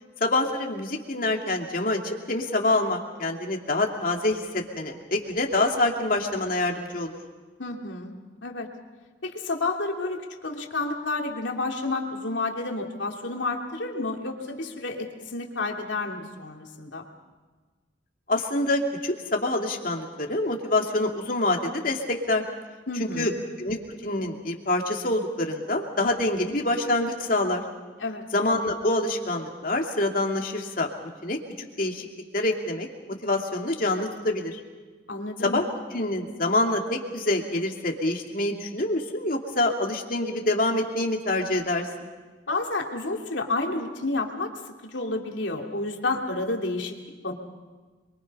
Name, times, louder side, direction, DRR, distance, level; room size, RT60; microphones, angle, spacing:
voice 1, 0.2-7.1 18.3-22.4 23.0-23.3 23.6-27.6 28.3-30.9 31.2-32.1 32.3-32.9 33.2-34.6 35.4-35.7 35.9-41.9, left 2 dB, 50° left, 2 dB, 2.7 m, -26 dB
voice 2, 7.6-8.1 8.4-8.7 9.2-17.0 22.9-23.3 28.0-28.2 35.1-35.6 42.5-44.5 44.8-47.0 47.2-47.3, left 2 dB, 85° left, 1 dB, 2.9 m, -30 dB
28.0 x 23.0 x 5.5 m, 1.4 s
head